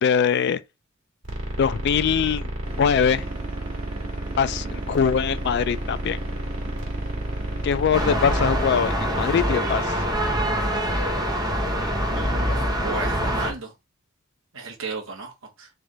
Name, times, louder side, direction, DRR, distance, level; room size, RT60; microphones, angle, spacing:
voice 1, 0.0-0.6 1.6-2.5 2.8-3.2 4.4-6.2 7.6-10.0, left 7 dB, 50° left, 0.3 m, -22 dB
sound 1, 1.2-8.7, right 1 dB, 85° right, 1.6 m, -31 dB
sound 2, 2.6-9.7, right 1 dB, 40° right, 1.8 m, -40 dB
sound 3, 7.9-13.5, equal, 20° right, 0.9 m, -24 dB
voice 2, 12.1-12.6 12.8-13.7 14.5-15.7, right 3 dB, 65° right, 1.2 m, -34 dB
3.4 x 3.2 x 3.9 m
head